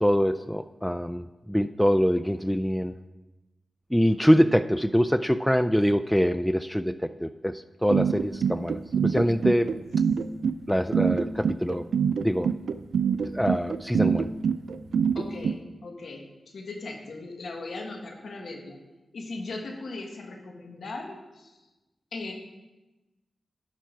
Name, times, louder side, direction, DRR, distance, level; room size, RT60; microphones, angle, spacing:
voice 1, 0.0-2.9 3.9-9.7 10.7-11.8 12.2-12.5 13.3-14.3, equal, 5° left, 12 dB, 0.4 m, -24 dB
sound 1, 7.9-15.5, right 7 dB, 85° right, 0.3 m, -24 dB
voice 2, 15.1-16.2 16.5-18.8 19.1-21.5 22.1-22.3, left 3 dB, 75° left, 2 dB, 1.5 m, -38 dB
11.5 x 5.9 x 4.6 m, 1.1 s
cardioid pair, 50°, 0 cm